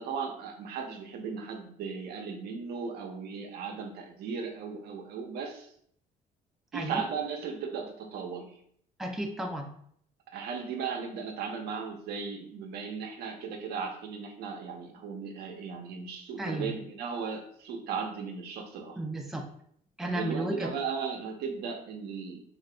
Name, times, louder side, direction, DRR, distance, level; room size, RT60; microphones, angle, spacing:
voice 1, 0.0-5.7 6.7-8.5 10.3-19.0 20.0-22.4, right 5 dB, 75° right, 4 dB, 0.6 m, -36 dB
voice 2, 6.7-7.0 9.0-9.7 16.4-16.7 19.0-19.4 20.0-20.7, right 1 dB, ahead, 2 dB, 0.4 m, -33 dB
2.8 x 2.5 x 3.2 m, 0.64 s
cardioid pair, 110°, 17 cm